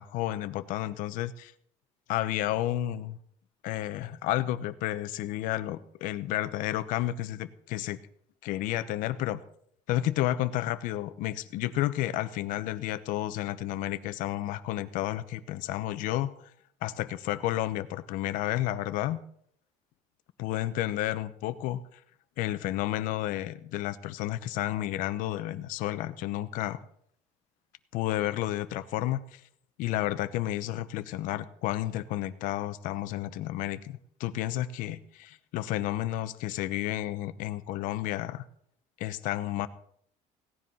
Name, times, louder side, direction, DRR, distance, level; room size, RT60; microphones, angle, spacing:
voice 1, 0.0-1.5 2.1-3.2 3.6-8.0 8.4-9.4 9.9-16.5 16.8-19.2 20.4-21.8 22.4-26.8 27.9-29.4 29.8-38.4 39.0-39.7, left 14 dB, 70° left, 12 dB, 1.0 m, -31 dB
17.0 x 10.5 x 5.5 m, 0.66 s
cardioid pair, 165°, 15 cm